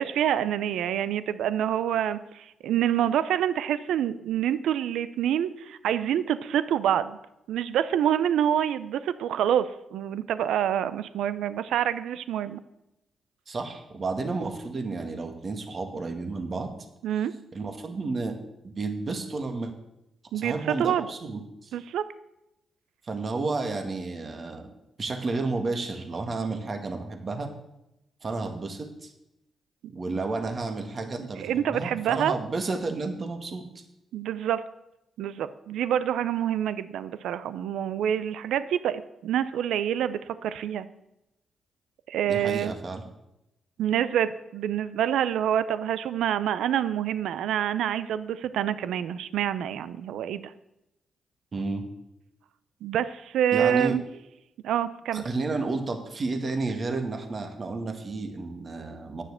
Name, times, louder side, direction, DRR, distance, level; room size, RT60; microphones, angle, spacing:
voice 1, 0.0-7.2 7.5-12.6 17.0-17.3 20.3-20.5 20.8-21.1 21.7-22.0 31.4-32.4 34.1-34.6 35.2-40.9 42.1-42.7 43.8-50.5 52.8-54.0 54.6-55.2, right 10 dB, 85° right, 14 dB, 0.5 m, -27 dB
voice 2, 13.5-16.7 17.5-18.4 18.6-19.7 20.3-21.7 23.0-24.7 25.0-27.5 28.2-29.1 29.9-33.7 42.3-43.0 51.5-51.9 53.5-54.0 55.1-59.2, right 3 dB, 45° right, 5 dB, 1.9 m, -31 dB
9.9 x 6.4 x 8.0 m, 0.87 s
supercardioid pair, 60°, 0 cm